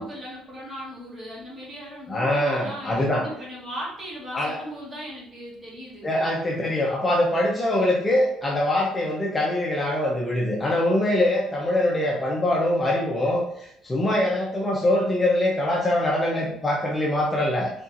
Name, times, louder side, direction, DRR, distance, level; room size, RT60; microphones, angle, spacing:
voice 1, 0.0-6.3, equal, 20° right, -5 dB, 1.7 m, -38 dB
voice 2, 2.1-3.2 4.3-4.6 6.0-17.7, left 1 dB, 15° left, -3 dB, 0.7 m, -23 dB
4.2 x 4.0 x 2.5 m, 0.74 s
cardioid pair, 135°, 0 cm